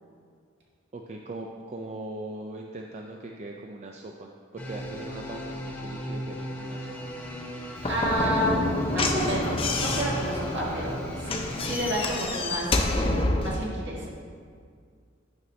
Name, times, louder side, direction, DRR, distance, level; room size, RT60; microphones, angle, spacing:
voice 1, 0.9-6.9, right 2 dB, 35° right, 1 dB, 0.4 m, -40 dB
sound 1, 4.6-12.2, equal, 10° left, 0.9 m, -37 dB
Slam / Knock, 7.8-13.6, left 2 dB, 30° left, 0.6 m, -28 dB
voice 2, 7.8-14.2, equal, 60° right, -4 dB, 1.6 m, -31 dB
9.5 x 6.0 x 3.1 m, 2.1 s
head